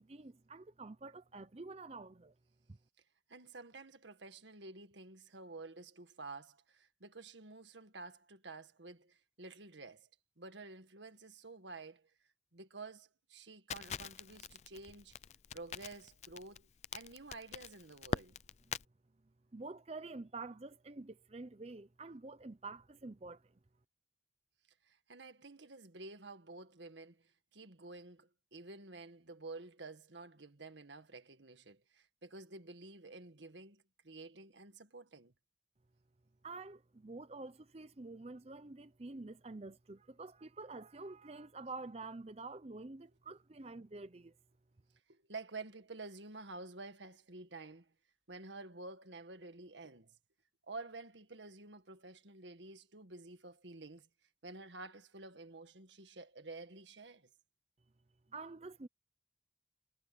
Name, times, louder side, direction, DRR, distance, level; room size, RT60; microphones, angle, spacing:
voice 1, 0.0-2.3 2.7-2.8 19.5-23.5 36.4-44.3 58.3-58.9, right 3 dB, 35° right, 0.7 m, -48 dB
voice 2, 3.3-10.1 10.4-12.1 12.5-15.2 15.5-18.3 24.8-35.3 45.1-47.9 48.3-50.2 50.7-54.1 54.4-57.3, right 3 dB, 85° right, 1.9 m, -50 dB
Crackle, 13.7-18.8, left 6 dB, 40° left, 0.4 m, -43 dB
head